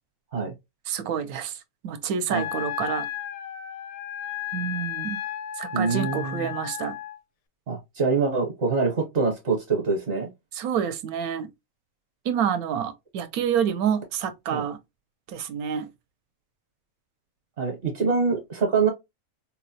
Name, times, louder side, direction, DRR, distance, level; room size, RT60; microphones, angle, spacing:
voice 1, 0.9-3.1 4.5-5.2 5.6-7.0 10.5-11.5 12.2-14.8 15.3-15.9, right 8 dB, 75° right, 1.0 m, -28 dB
Wind instrument woodwind instrument, 2.3-7.2, left 12 dB, 85° left, 1.1 m, -34 dB
voice 2, 5.7-6.4 7.7-10.3 14.5-14.6 17.6-18.9, right 4 dB, 55° right, 1.1 m, -25 dB
4.0 x 2.0 x 2.7 m
omnidirectional pair, 1.6 m